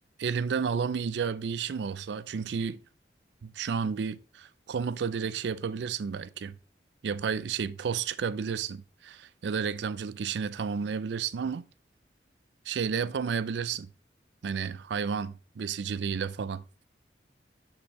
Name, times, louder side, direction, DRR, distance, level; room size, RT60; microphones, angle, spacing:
voice 1, 0.2-2.8 3.4-6.5 7.0-11.6 12.7-13.9 14.4-16.6, right 6 dB, 75° right, 0.4 m, -31 dB
6.0 x 5.8 x 3.1 m
head